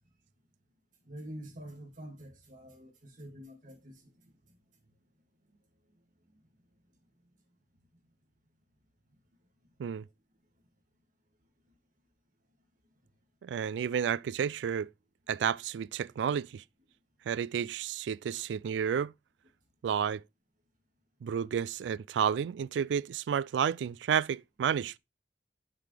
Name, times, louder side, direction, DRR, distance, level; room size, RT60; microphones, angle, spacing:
voice 1, 1.0-4.1, equal, 50° right, 2.6 m, -46 dB
voice 2, 13.4-14.9 15.3-16.6 17.3-19.1 19.8-20.2 21.2-25.0, right 8 dB, 85° right, 0.3 m, -31 dB
6.9 x 6.6 x 3.4 m
head